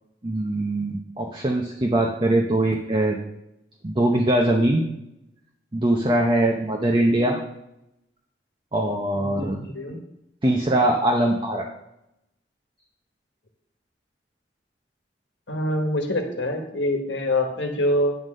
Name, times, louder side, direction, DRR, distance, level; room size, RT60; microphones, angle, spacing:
voice 1, 0.2-3.2 3.8-4.8 5.7-7.4 8.7-9.6 10.4-11.7, right 1 dB, 30° right, 1 dB, 0.8 m, -22 dB
voice 2, 9.1-10.0 15.5-18.1, left 1 dB, 85° left, 4 dB, 1.4 m, -25 dB
9.2 x 4.0 x 6.4 m, 0.84 s
head